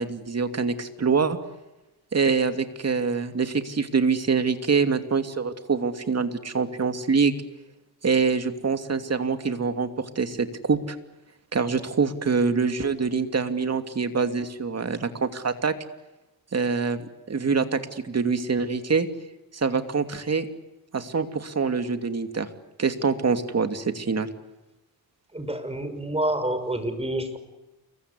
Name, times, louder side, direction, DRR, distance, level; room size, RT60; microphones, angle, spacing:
voice 1, 0.0-1.4 2.1-7.3 8.0-11.0 11.5-15.7 16.5-17.0 17.3-19.1 19.5-20.5 20.9-22.5 22.8-24.3, right 5 dB, 45° right, 8 dB, 2.7 m, -25 dB
voice 2, 25.3-27.4, right 1 dB, 15° right, 9 dB, 5.9 m, -28 dB
29.0 x 23.5 x 8.4 m, 1.0 s
cardioid pair, 95°, 37 cm